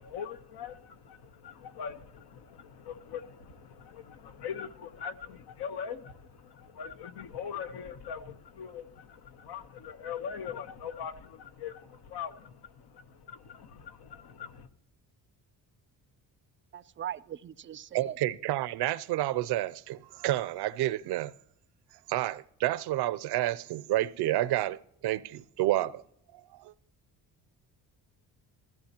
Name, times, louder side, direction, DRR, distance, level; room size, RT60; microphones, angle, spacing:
voice 1, 0.0-14.7, left 7 dB, 75° left, 1.1 m, -42 dB
voice 2, 16.7-18.1, right 10 dB, 30° right, 0.4 m, -40 dB
voice 3, 17.9-21.3 22.1-24.8 25.0-26.0 26.5-26.7, right 15 dB, 80° right, 0.6 m, -29 dB
15.5 x 14.0 x 2.9 m
cardioid pair, 85°, 39 cm